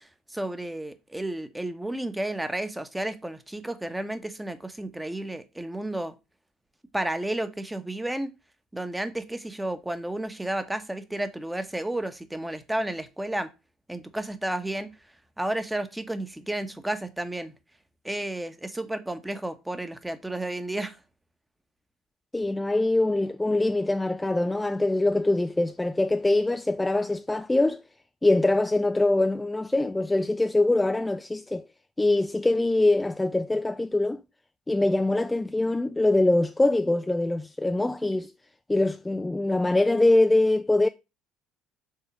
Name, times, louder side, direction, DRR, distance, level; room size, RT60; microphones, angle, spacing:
voice 1, 0.0-6.1 6.9-8.3 8.7-13.5 13.9-14.9 15.4-17.5 18.0-21.0, right 1 dB, 10° right, 1.0 m, -32 dB
voice 2, 22.3-27.8 28.2-31.6 32.0-34.2 34.7-38.3 38.7-40.9, left 2 dB, 10° left, 0.4 m, -23 dB
5.8 x 3.8 x 6.1 m
hypercardioid pair, 60°, 0 cm